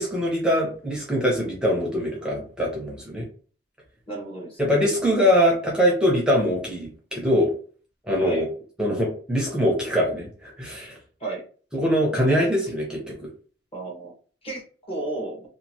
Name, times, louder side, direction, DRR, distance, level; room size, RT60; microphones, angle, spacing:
voice 1, 0.0-3.3 4.6-7.5 8.1-8.5 8.8-10.9 11.7-13.3, equal, 5° right, -2 dB, 0.7 m, -23 dB
voice 2, 4.1-4.9 8.2-8.4 11.2-11.4 13.7-14.1 14.4-14.6 14.9-15.4, right 2 dB, 30° left, 0 dB, 1.1 m, -33 dB
2.8 x 2.5 x 2.8 m, 0.41 s
head